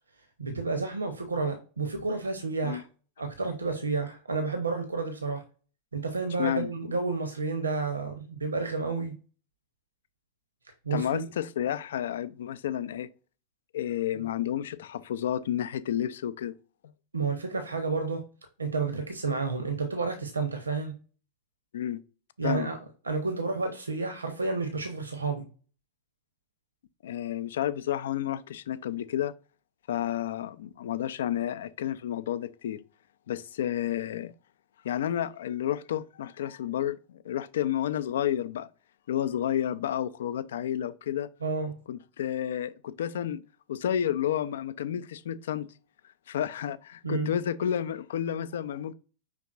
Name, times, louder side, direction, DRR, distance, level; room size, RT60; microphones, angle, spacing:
voice 1, 0.4-2.8 3.2-5.4 5.9-9.2 10.8-11.3 17.1-18.2 18.6-21.0 22.4-22.8 23.0-25.5 41.4-41.8 47.0-47.3, right 4 dB, 75° right, 0.7 m, -30 dB
voice 2, 6.4-6.7 10.9-13.1 13.7-16.5 21.7-22.0 22.4-22.7 27.0-29.3 29.9-32.8 33.3-34.3 34.8-38.7 39.1-41.3 41.9-43.4 43.7-45.7 46.3-48.9, left 10 dB, 60° left, 0.4 m, -31 dB
6.0 x 3.5 x 2.5 m
figure-of-eight pair, 90°, 0 cm